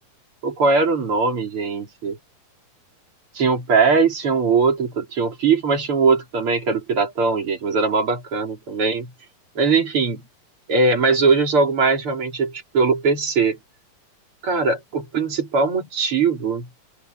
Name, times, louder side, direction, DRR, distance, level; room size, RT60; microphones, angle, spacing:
voice 1, 0.4-2.2 3.3-9.1 9.5-10.2 10.7-13.6 14.4-16.7, right 4 dB, 45° right, 4.6 m, -20 dB
open air
omnidirectional pair, 3.6 m